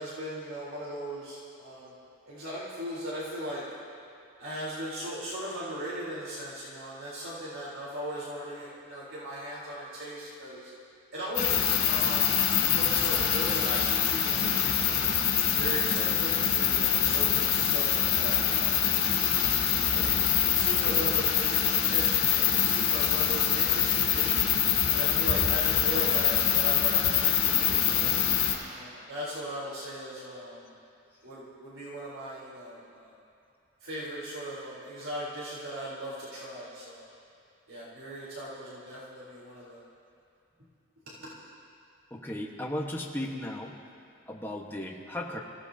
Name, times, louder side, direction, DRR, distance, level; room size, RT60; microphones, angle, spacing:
voice 1, 0.0-1.9 2.3-3.6 4.4-10.7 11.1-12.4 12.7-15.1 15.6-18.8 19.9-20.2 20.5-24.5 24.9-28.1 28.7-30.7 31.2-33.2 33.8-37.1 37.7-39.8 41.2-41.3, right 1 dB, 70° right, -8 dB, 3.9 m, -38 dB
sound 1, 11.3-28.5, left 9 dB, 80° left, 3.7 m, -25 dB
voice 2, 42.1-43.8 44.3-45.4, left 1 dB, 10° left, -1 dB, 1.3 m, -36 dB
27.5 x 16.5 x 2.9 m, 2.5 s
head